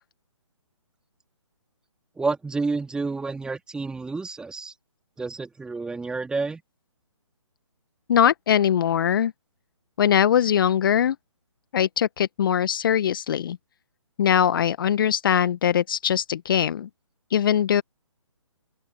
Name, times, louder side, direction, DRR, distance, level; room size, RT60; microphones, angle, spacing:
voice 1, 2.2-4.7 5.2-6.6, right 3 dB, 5° right, 3.1 m, -29 dB
voice 2, 8.1-9.3 10.0-11.2 11.7-13.6 14.2-16.9 17.3-17.8, left 9 dB, 40° left, 1.2 m, -21 dB
open air
figure-of-eight pair, 140°, 17 cm